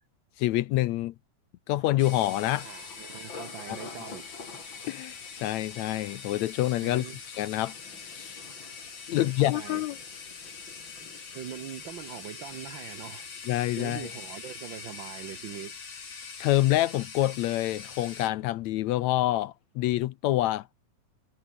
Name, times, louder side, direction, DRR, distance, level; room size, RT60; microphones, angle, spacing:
voice 1, 0.4-1.1 1.7-2.7 3.7-3.8 4.9-7.1 7.4-7.8 8.1-8.4 9.1-10.0 13.5-14.1 16.4-20.7, left 15 dB, 75° left, 1.9 m, -27 dB
Thunder, 1.7-17.5 17.7-18.4 18.8-19.0, left 4 dB, 40° left, 4.7 m, -52 dB
sound 1, 2.0-18.3, left 5 dB, 55° left, 4.8 m, -43 dB
voice 2, 2.6-4.3 6.8-7.2 9.1-9.8 11.3-13.3 13.8-15.8, right 10 dB, 70° right, 1.1 m, -42 dB
omnidirectional pair, 3.5 m